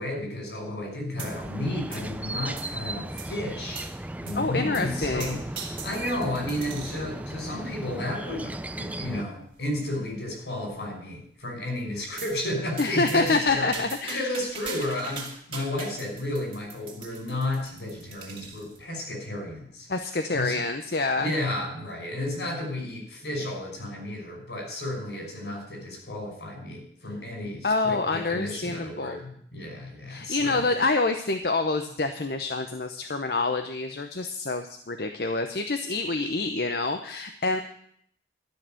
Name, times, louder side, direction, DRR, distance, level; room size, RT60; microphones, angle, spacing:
voice 1, 0.0-3.8 4.2-13.8 14.1-19.9 20.3-20.6 21.2-30.7, left 1 dB, 85° left, 1 dB, 5.5 m, -33 dB
sound 1, 1.2-9.2, right 1 dB, 10° right, 0.4 m, -36 dB
sound 2, 1.2-1.6 1.9-2.8 3.2-3.3 3.7-3.9 4.3-4.4 4.7-7.1 7.7-8.0 8.7-8.8 9.1-9.2 9.5-9.6 10.1-10.5 12.2-12.4 12.8-18.8, right 5 dB, 30° right, 2.3 m, -41 dB
voice 2, 4.3-5.4 12.8-14.3 19.9-21.3 27.6-29.2 30.1-37.6, left 3 dB, 65° left, 6 dB, 0.8 m, -27 dB
13.0 x 6.6 x 9.0 m, 0.65 s
head